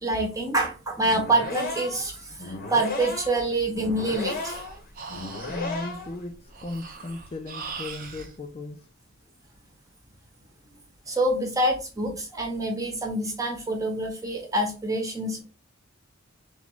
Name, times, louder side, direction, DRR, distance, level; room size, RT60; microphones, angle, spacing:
voice 1, 0.0-4.6 11.1-15.4, right 1 dB, 15° right, 1.0 m, -26 dB
sound 1, 1.0-6.2, left 3 dB, 45° left, 0.9 m, -35 dB
Breathing, 3.7-8.3, right 4 dB, 40° right, 0.7 m, -41 dB
voice 2, 5.5-8.9, left 2 dB, 25° left, 0.4 m, -36 dB
3.5 x 3.1 x 3.7 m
head